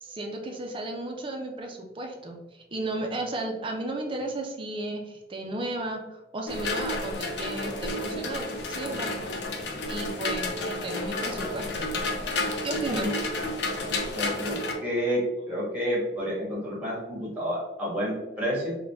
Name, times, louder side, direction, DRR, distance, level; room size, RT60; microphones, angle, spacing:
voice 1, 0.0-9.1 9.9-11.9 12.6-13.1, right 2 dB, 30° right, 2 dB, 0.5 m, -34 dB
sound 1, 6.5-14.7, left 2 dB, 70° left, 0.6 m, -31 dB
voice 2, 12.9-13.2 14.2-15.2 15.5-18.8, equal, 10° right, -6 dB, 1.4 m, -30 dB
3.7 x 2.2 x 3.5 m, 1.0 s
head